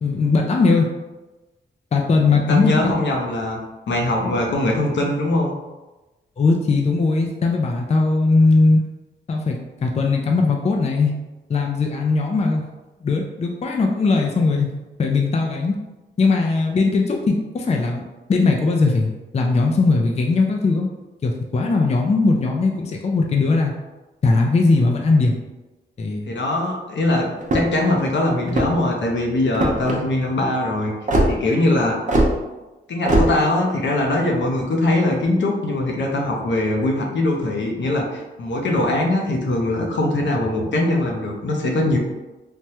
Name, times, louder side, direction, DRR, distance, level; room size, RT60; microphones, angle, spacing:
voice 1, 0.0-0.9 1.9-2.9 6.4-8.8 9.3-11.1 11.5-12.6 13.0-14.7 15.0-15.8 16.2-20.9 21.2-23.7 24.2-25.3 26.0-26.3, left 3 dB, 35° left, 1 dB, 0.4 m, -19 dB
voice 2, 2.3-3.6 3.9-5.5 26.3-30.9 31.3-32.0 32.9-42.0, left 1 dB, 70° left, 0 dB, 0.6 m, -21 dB
sound 1, 27.4-27.8 28.4-28.9 29.5-30.0 31.1-31.3 32.1-32.3 33.1-33.3, right 1 dB, 40° right, 0.7 m, -18 dB
3.3 x 2.2 x 2.8 m, 1.1 s
cardioid pair, 75°, 19 cm